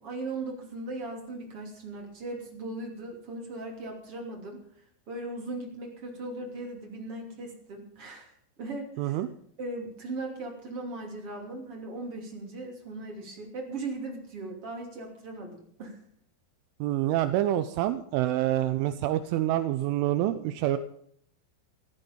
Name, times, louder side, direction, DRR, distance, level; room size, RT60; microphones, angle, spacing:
voice 1, 0.0-4.6 5.1-9.2 9.6-16.0, right 2 dB, 35° right, 1 dB, 3.2 m, -38 dB
voice 2, 9.0-9.3 16.8-20.8, right 13 dB, 85° right, 10 dB, 3.2 m, -27 dB
14.5 x 14.0 x 5.3 m, 0.65 s
omnidirectional pair, 5.6 m